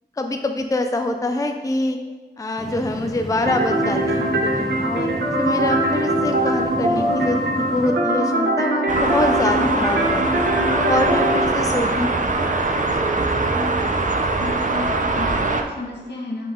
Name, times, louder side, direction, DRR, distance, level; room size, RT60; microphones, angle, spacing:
voice 1, 0.2-2.0 2.4-10.4 10.9-12.3 13.0-13.1, left 2 dB, 20° left, 5 dB, 0.4 m, -25 dB
sound 1, 2.6-7.9, equal, ahead, 1.3 m, -33 dB
sound 2, 3.5-11.5, right 1 dB, 85° right, 0.9 m, -22 dB
sound 3, 8.9-15.6, right 3 dB, 45° right, 0.6 m, -22 dB
voice 2, 9.5-9.9 13.5-13.8 14.4-16.5, left 2 dB, 80° left, -3 dB, 1.4 m, -33 dB
7.6 x 3.7 x 3.7 m, 1.3 s
wide cardioid pair, 55°, 18 cm